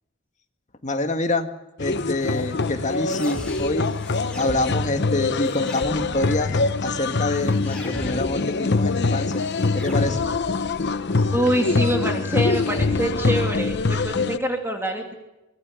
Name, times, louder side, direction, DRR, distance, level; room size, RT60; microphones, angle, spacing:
voice 1, 0.8-1.5 1.8-3.9 4.4-9.4 9.7-10.2, left 2 dB, 35° left, 6 dB, 1.8 m, -26 dB
sound 1, 1.8-14.4, left 3 dB, 55° left, 0.9 m, -24 dB
sound 2, 2.2-14.2, equal, 5° left, 4.9 m, -38 dB
voice 2, 11.3-15.1, equal, 10° right, 2 dB, 2.8 m, -25 dB
24.5 x 19.5 x 8.3 m, 0.98 s
head